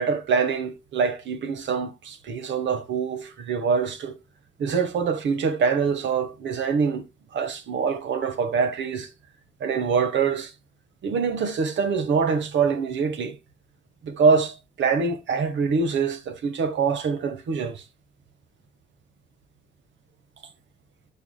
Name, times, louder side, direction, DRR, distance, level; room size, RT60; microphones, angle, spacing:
voice 1, 0.0-4.2 4.6-7.0 7.3-9.1 9.6-10.5 11.0-13.4 14.0-17.8, right 5 dB, 70° right, 1.5 m, -24 dB
12.5 x 4.8 x 2.3 m
cardioid pair, 90°, 20 cm